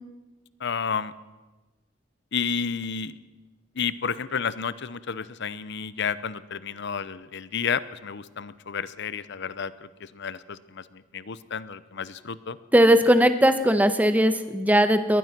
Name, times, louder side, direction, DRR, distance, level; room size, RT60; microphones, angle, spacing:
voice 1, 0.6-1.1 2.3-3.1 3.8-12.6, left 6 dB, 60° left, 16 dB, 0.8 m, -31 dB
voice 2, 12.7-15.2, equal, 10° right, 9 dB, 1.3 m, -19 dB
23.0 x 19.0 x 6.1 m, 1.2 s
head